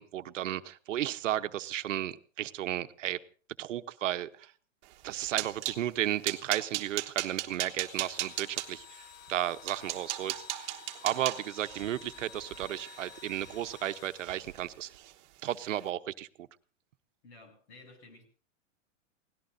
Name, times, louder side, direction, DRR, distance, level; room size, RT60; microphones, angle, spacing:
voice 1, 0.0-3.2 3.6-4.5 5.0-14.9 15.4-16.5, right 12 dB, 70° right, 1.0 m, -34 dB
sound 1, 4.9-5.8 6.2-8.7 9.3-9.4 9.7-13.9 14.2-14.6 14.9-15.1 15.5-15.7, right 16 dB, 35° right, 1.3 m, -37 dB
Engine / Drill, 7.8-15.1, left 7 dB, 90° left, 1.7 m, -52 dB
voice 2, 17.2-18.2, left 3 dB, 55° left, 7.8 m, -53 dB
27.5 x 18.0 x 2.7 m
hypercardioid pair, 155°, 39 cm